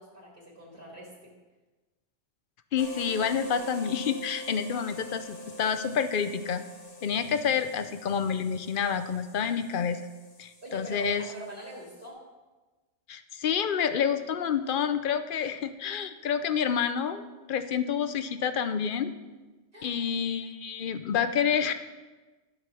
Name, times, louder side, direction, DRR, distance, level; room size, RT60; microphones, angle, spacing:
voice 1, 0.0-1.3 10.6-12.2 19.7-20.0, right 1 dB, 50° right, -5 dB, 2.4 m, -43 dB
voice 2, 2.7-6.6 7.0-10.0 10.4-11.3 13.1-17.2 17.5-19.1 19.8-21.7, left 7 dB, 55° left, 10 dB, 0.8 m, -28 dB
sound 1, 2.8-12.1, equal, 35° left, 1.3 m, -44 dB
13.0 x 5.3 x 6.1 m, 1.2 s
omnidirectional pair, 1.2 m